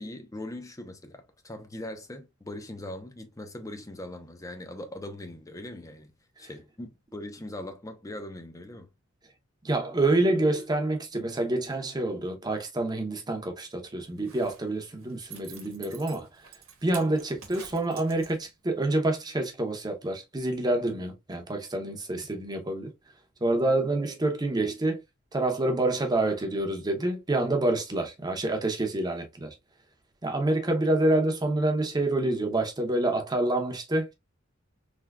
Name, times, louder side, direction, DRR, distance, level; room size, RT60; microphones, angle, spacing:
voice 1, 0.0-6.1 6.4-8.9, left 1 dB, 15° left, 0.5 m, -40 dB
voice 2, 9.6-16.5 16.8-22.9 23.4-25.0 25.3-29.5 30.2-34.1, right 2 dB, 20° right, 0.7 m, -27 dB
Zipper (clothing), 14.1-18.7 19.0-19.1, right 7 dB, 85° right, 1.0 m, -47 dB
3.4 x 2.7 x 2.3 m
head